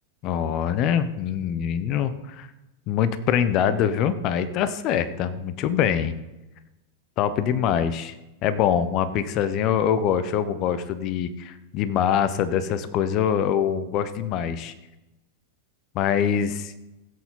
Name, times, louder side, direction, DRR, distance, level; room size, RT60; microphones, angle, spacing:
voice 1, 0.2-2.5 2.9-6.1 7.2-8.1 8.4-14.7 15.9-16.7, left 8 dB, 40° left, 13 dB, 0.9 m, -24 dB
16.0 x 8.3 x 3.9 m, 1.0 s
figure-of-eight pair, 90°, 0 cm